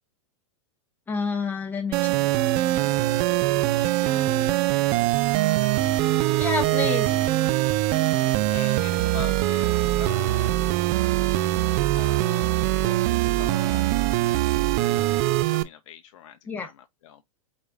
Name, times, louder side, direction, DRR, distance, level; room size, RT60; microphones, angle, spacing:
voice 1, 1.1-2.2 6.4-7.1 16.5-16.7, left 4 dB, 10° left, 1.2 m, -28 dB
sound 1, 1.9-15.6, right 16 dB, 40° right, 0.4 m, -23 dB
voice 2, 3.1-5.9 6.2-6.6 8.0-10.6 11.2-11.6 11.9-15.0 15.5-17.2, left 10 dB, 60° left, 0.5 m, -45 dB
4.4 x 4.1 x 2.4 m
hypercardioid pair, 100°, 17 cm